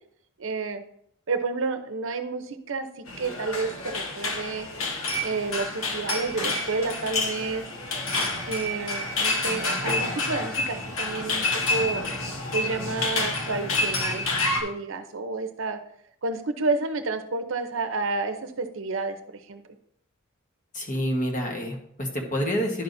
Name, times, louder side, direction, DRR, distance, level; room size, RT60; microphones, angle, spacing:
voice 1, 0.4-0.8 1.3-4.7 5.2-7.7 8.5-12.0 12.5-14.3 14.6-15.8 16.2-19.6, right 3 dB, 65° right, 8 dB, 0.7 m, -30 dB
sound 1, 3.1-14.6, left 2 dB, 80° left, 1.2 m, -28 dB
voice 2, 20.7-22.8, equal, 40° left, 0 dB, 1.3 m, -28 dB
10.5 x 5.7 x 2.6 m, 0.71 s
head